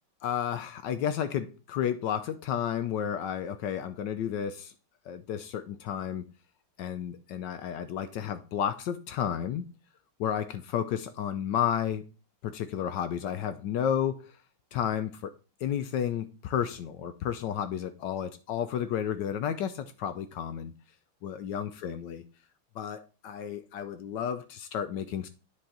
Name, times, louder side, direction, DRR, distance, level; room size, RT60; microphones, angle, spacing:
voice 1, 0.2-4.7 5.1-6.3 6.8-9.7 10.2-12.0 12.4-14.3 14.7-15.3 15.6-20.7 21.2-22.2 22.8-25.3, left 9 dB, 75° left, 1.0 m, -32 dB
9.7 x 4.3 x 3.8 m
omnidirectional pair, 2.3 m